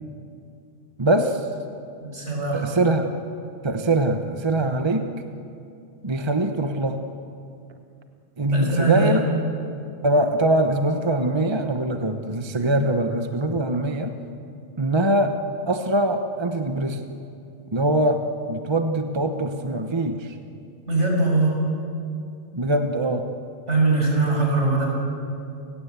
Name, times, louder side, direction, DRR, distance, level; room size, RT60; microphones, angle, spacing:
voice 1, 1.0-1.5 2.5-3.1 3.6-5.1 6.0-7.1 8.4-9.2 10.0-14.2 14.8-17.1 17.7-20.4 22.5-23.3, right 1 dB, 25° right, 6 dB, 1.0 m, -23 dB
voice 2, 2.0-2.7 8.5-9.1 20.9-21.6 23.7-24.9, right 3 dB, 70° right, -1 dB, 6.9 m, -21 dB
30.0 x 17.0 x 8.1 m, 2.6 s
omnidirectional pair, 1.3 m